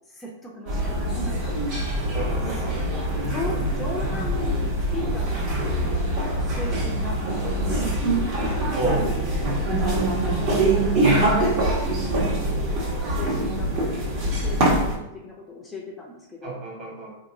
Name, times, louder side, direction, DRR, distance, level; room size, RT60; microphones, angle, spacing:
voice 1, 0.1-1.6 2.6-2.8 3.3-4.6 4.9-7.9 8.5-11.3 12.0-13.7 14.4-16.6, left 2 dB, 15° left, -3 dB, 0.6 m, -38 dB
sound 1, 0.7-15.0, right 1 dB, 50° right, 1.2 m, -24 dB
voice 2, 2.1-2.8 7.4-7.7 8.7-9.1 16.4-17.1, right 2 dB, 35° right, -3 dB, 1.4 m, -30 dB
3.7 x 2.9 x 2.6 m, 0.86 s
hypercardioid pair, 130°, 0 cm